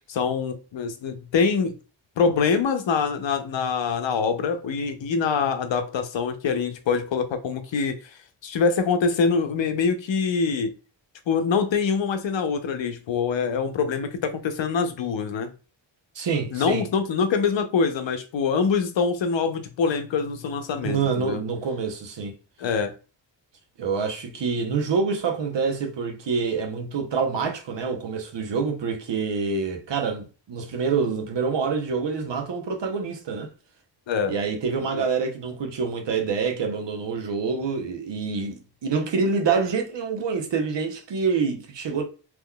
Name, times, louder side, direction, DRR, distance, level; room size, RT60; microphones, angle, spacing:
voice 1, 0.1-1.8 2.2-10.7 11.3-15.5 16.5-21.4 22.6-22.9 34.1-34.3 34.9-35.0, left 5 dB, 80° left, 0.7 m, -24 dB
voice 2, 16.2-16.8 20.8-22.3 23.8-33.5 34.3-42.1, right 5 dB, 70° right, 0.9 m, -26 dB
3.6 x 3.0 x 2.3 m
wide cardioid pair, 130°, 45 cm